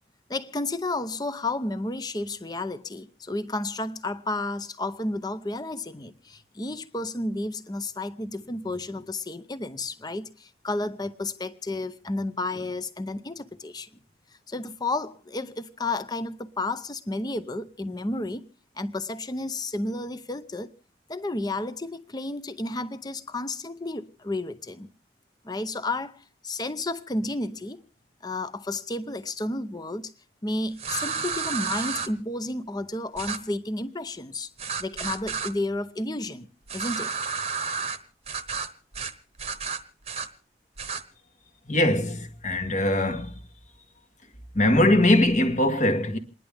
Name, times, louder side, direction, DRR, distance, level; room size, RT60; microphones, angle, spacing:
voice 1, 0.3-13.9 14.5-18.5 18.8-20.7 21.1-24.9 25.4-27.8 28.2-30.1 30.4-34.5 34.8-37.1, left 2 dB, 20° left, 0.7 m, -32 dB
sound 1, 30.8-32.1 33.2-33.4 34.6-35.5 36.7-38.0 38.3-38.7 38.9-39.1 39.4-40.3 40.8-41.0, right 5 dB, 35° right, 1.0 m, -31 dB
voice 2, 41.7-43.3 44.5-46.2, left 1 dB, 40° left, 1.5 m, -21 dB
28.0 x 11.0 x 3.5 m
head